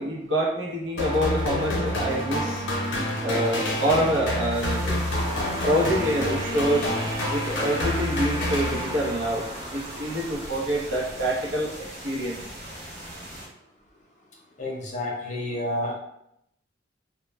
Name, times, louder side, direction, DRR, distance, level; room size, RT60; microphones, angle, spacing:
voice 1, 0.0-2.6 3.2-5.0 5.6-6.9 7.3-12.4, right 1 dB, 80° right, -3 dB, 0.7 m, -26 dB
sound 1, 1.0-9.3, left 1 dB, 85° left, 0.6 m, -28 dB
sound 2, 4.5-13.5, right 1 dB, 40° right, 1.1 m, -40 dB
sound 3, 5.2-11.8, right 1 dB, 20° right, 0.3 m, -39 dB
voice 2, 14.6-15.9, left 1 dB, 40° left, -1 dB, 0.5 m, -30 dB
2.2 x 2.1 x 3.1 m, 0.79 s
head